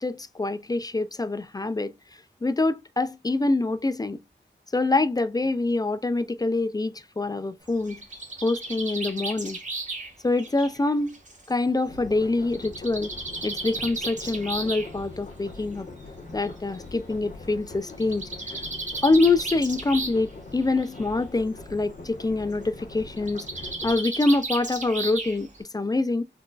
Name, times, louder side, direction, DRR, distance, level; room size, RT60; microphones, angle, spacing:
voice 1, 0.0-1.9 2.4-4.2 4.7-8.0 8.4-9.6 10.2-11.2 11.5-13.1 13.4-15.9 16.3-18.6 19.0-23.5 23.8-26.2, left 2 dB, 20° left, 0.3 m, -25 dB
Bird, 7.7-11.5 12.5-14.9 16.0-16.1 16.4-16.5 16.7-16.8 17.9-20.3 20.6-21.1 23.2-25.6, right 2 dB, 40° right, 1.1 m, -34 dB
sound 1, 11.9-24.0, left 2 dB, 40° left, 1.0 m, -43 dB
3.8 x 2.4 x 2.3 m
wide cardioid pair, 65°, 19 cm